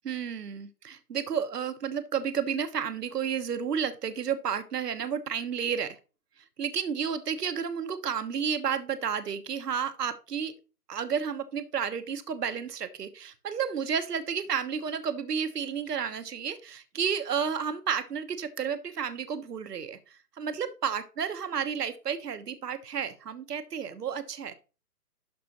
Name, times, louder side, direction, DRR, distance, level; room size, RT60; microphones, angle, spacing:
voice 1, 0.0-6.0 6.6-10.5 10.9-24.6, right 7 dB, 75° right, 10 dB, 1.1 m, -31 dB
12.0 x 5.2 x 2.9 m, 0.34 s
hypercardioid pair, 145°, 48 cm